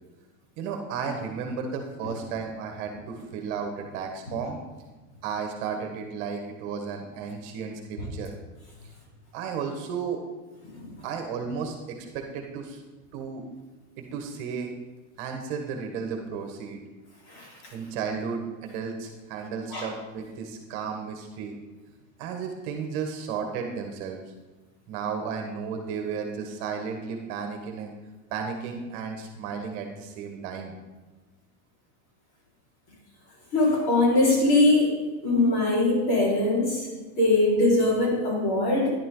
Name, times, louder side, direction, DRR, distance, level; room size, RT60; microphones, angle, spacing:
voice 1, 0.6-4.6 5.2-8.3 9.3-10.2 11.0-12.8 13.1-13.4 14.0-14.7 15.2-16.8 17.7-21.6 22.2-24.2 24.9-27.9 28.3-30.7, right 6 dB, 40° right, 4 dB, 1.6 m, -33 dB
voice 2, 33.5-36.9 37.2-38.9, left 2 dB, 40° left, -4 dB, 4.8 m, -22 dB
13.5 x 11.0 x 3.9 m, 1.3 s
supercardioid pair, 165°, 41 cm